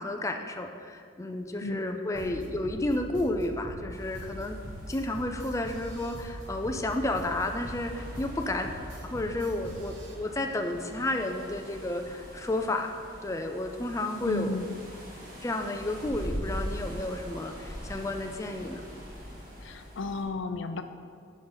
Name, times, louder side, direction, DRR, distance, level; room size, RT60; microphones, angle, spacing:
voice 1, 0.0-4.6 4.9-8.7 9.0-12.9 13.2-14.6 15.4-18.8, left 1 dB, 15° left, 4 dB, 0.4 m, -31 dB
sound 1, 2.1-10.1, equal, 70° right, 1.1 m, -42 dB
sound 2, 3.9-20.2, equal, 50° right, 2.1 m, -43 dB
voice 2, 14.3-14.8 19.6-20.8, left 3 dB, 75° left, 8 dB, 0.5 m, -34 dB
11.0 x 5.2 x 3.9 m, 2.1 s
head